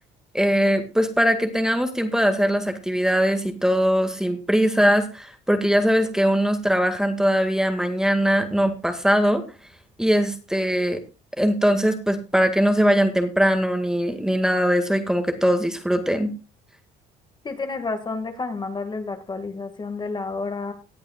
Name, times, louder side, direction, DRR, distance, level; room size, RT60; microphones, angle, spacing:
voice 1, 0.3-9.4 10.0-11.0 11.4-16.3, equal, 5° right, 7 dB, 1.9 m, -21 dB
voice 2, 17.4-20.7, left 3 dB, 25° left, 7 dB, 1.9 m, -30 dB
18.5 x 8.8 x 2.4 m, 0.30 s
cardioid pair, 110°, 17 cm